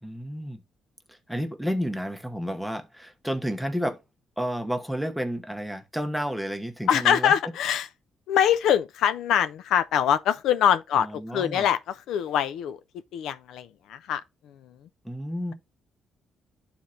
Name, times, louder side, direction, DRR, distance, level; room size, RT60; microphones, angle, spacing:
voice 1, 0.0-0.6 1.1-4.0 4.4-7.3 10.9-11.7 15.0-15.5, equal, ahead, 1.0 m, -31 dB
voice 2, 6.9-7.9 8.3-12.8 13.1-14.2, left 9 dB, 85° left, 0.4 m, -24 dB
11.5 x 4.3 x 2.5 m
cardioid pair, 90°, 0 cm